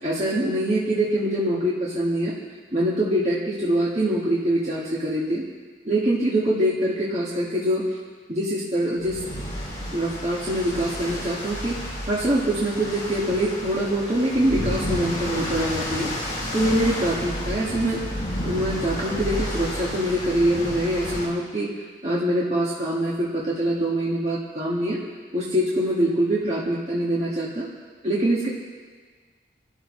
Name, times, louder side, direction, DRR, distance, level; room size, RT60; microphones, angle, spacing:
voice 1, 0.0-2.4 2.7-5.4 5.9-8.0 8.3-9.2 9.9-16.1 16.5-18.0 18.4-21.7 22.0-25.0 25.3-27.7 28.0-28.5, right 1 dB, 35° right, -6 dB, 2.0 m, -24 dB
sound 1, 9.0-21.3, equal, 25° left, 4.9 m, -31 dB
27.5 x 12.5 x 3.3 m, 1.5 s
head